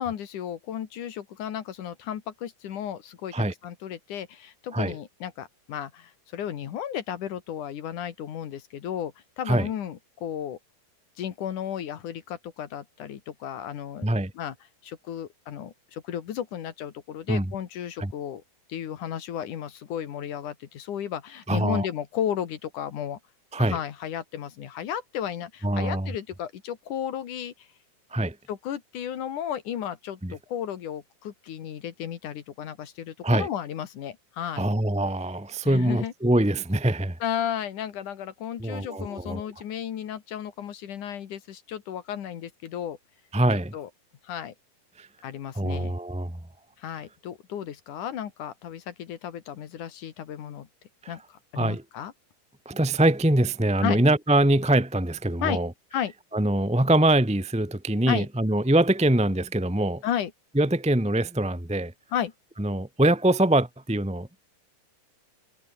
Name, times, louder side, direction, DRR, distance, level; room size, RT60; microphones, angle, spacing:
voice 1, 0.0-10.6 11.2-14.1 14.3-14.6 14.8-18.4 18.7-23.2 23.6-27.7 28.5-34.7 35.6-36.1 37.2-43.0 43.5-43.9 44.2-44.5 45.2-45.9 46.8-50.7 51.1-52.1 53.8-54.0 55.4-55.6 55.9-56.1 58.1-58.3 60.0-60.3 62.1-62.3, left 9 dB, 70° left, 3.2 m, -34 dB
voice 2, 21.5-21.9 23.5-23.8 25.6-26.1 28.1-28.3 30.2-30.3 33.2-33.5 34.6-37.2 38.6-39.4 43.3-43.7 45.0-45.1 45.5-46.4 51.0-51.1 51.6-51.8 52.6-55.7 56.3-60.0 60.5-61.9 62.6-64.3, right 1 dB, 5° right, 0.8 m, -23 dB
omnidirectional pair, 3.7 m